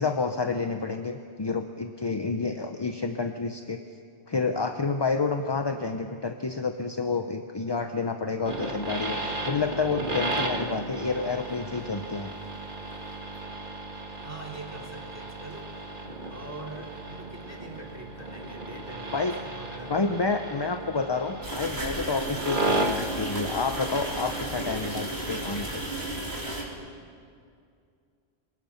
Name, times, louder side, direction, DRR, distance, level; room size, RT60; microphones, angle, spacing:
voice 1, 0.0-3.8 4.3-9.2 9.4-12.3 19.1-19.3 19.9-25.9, left 4 dB, 30° left, 7 dB, 0.6 m, -29 dB
sound 1, 8.5-26.1, right 2 dB, 45° right, 1.9 m, -35 dB
voice 2, 14.2-15.8 16.3-20.0, right 2 dB, 15° right, -1 dB, 2.8 m, -43 dB
sound 2, 21.4-26.6, right 1 dB, 65° right, 3.3 m, -34 dB
24.0 x 21.0 x 5.8 m, 2.3 s
omnidirectional pair, 1.1 m